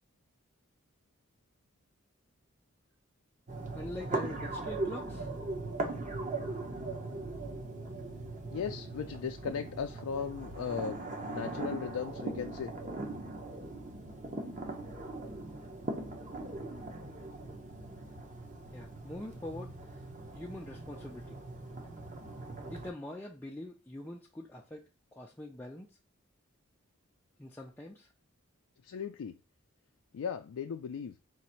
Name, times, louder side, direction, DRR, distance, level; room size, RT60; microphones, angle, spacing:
sound 1, 3.5-22.9, right 2 dB, 35° right, 0.8 m, -40 dB
voice 1, 3.7-5.3 18.7-20.0 20.3-21.4 22.6-26.0 27.4-28.1, left 1 dB, 10° left, 0.3 m, -44 dB
voice 2, 8.5-12.7 28.8-29.4 30.1-31.2, left 7 dB, 85° left, 0.4 m, -37 dB
3.9 x 2.6 x 4.3 m
head